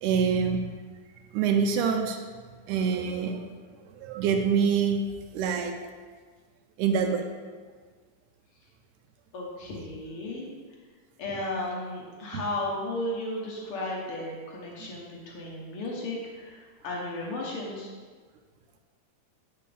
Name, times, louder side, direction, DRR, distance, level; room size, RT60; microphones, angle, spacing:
voice 1, 0.0-0.7 1.3-2.2 2.7-3.5 4.0-5.0 5.3-5.8 6.8-7.3 12.3-12.4, right 6 dB, 90° right, 3 dB, 1.8 m, -25 dB
voice 2, 9.3-10.5 11.2-17.9, left 1 dB, 75° left, -3 dB, 1.2 m, -34 dB
9.1 x 6.8 x 3.4 m, 1.5 s
omnidirectional pair, 4.1 m